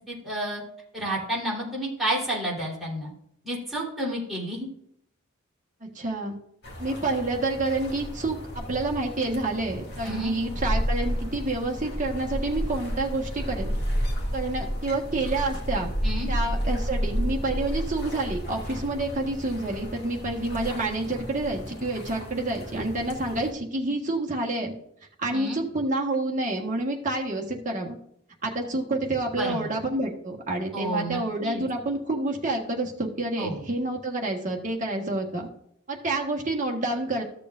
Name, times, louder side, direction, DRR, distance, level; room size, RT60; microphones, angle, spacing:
voice 1, 0.1-0.6 0.9-3.1 3.4-4.7 10.0-10.3 16.0-16.3 25.3-25.6 29.3-29.7 30.7-31.6 33.4-33.6, right 1 dB, ahead, -7 dB, 3.6 m, -30 dB
voice 2, 5.8-6.4 6.8-13.7 14.3-15.9 16.3-24.7 25.2-28.0 28.4-35.5 35.9-37.2, right 2 dB, 35° right, 0 dB, 1.6 m, -28 dB
sound 1, 6.6-23.5, equal, 50° left, 2.1 m, -32 dB
14.0 x 6.7 x 2.6 m, 0.71 s
head